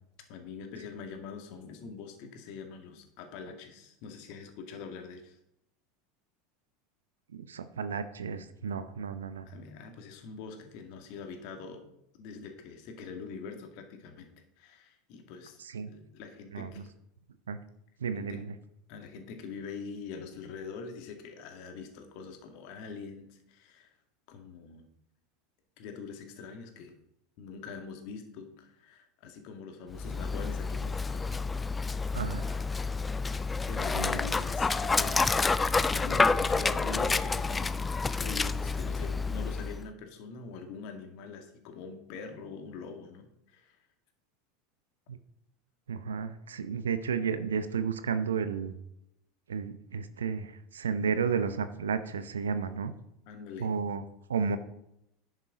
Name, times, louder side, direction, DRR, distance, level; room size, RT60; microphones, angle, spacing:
voice 1, 0.3-5.4 9.5-11.9 12.2-14.3 14.6-15.6 15.9-16.9 18.1-18.4 18.9-23.9 24.3-24.9 25.8-26.9 27.4-31.4 32.6-33.0 33.7-35.5 35.9-37.7 38.2-43.8 53.3-53.7, left 5 dB, 55° left, 5 dB, 1.9 m, -44 dB
voice 2, 7.3-9.5 15.6-15.9 16.5-16.7 17.5-17.6 18.0-18.4 32.1-32.6 33.9-34.2 45.1-45.2 45.9-48.7 49.5-53.0 53.6-54.0 54.3-54.6, right 6 dB, 75° right, 12 dB, 0.7 m, -32 dB
Dog, 29.9-39.9, left 4 dB, 15° left, 0.4 m, -29 dB
10.5 x 6.5 x 4.9 m, 0.79 s
figure-of-eight pair, 80°, 0 cm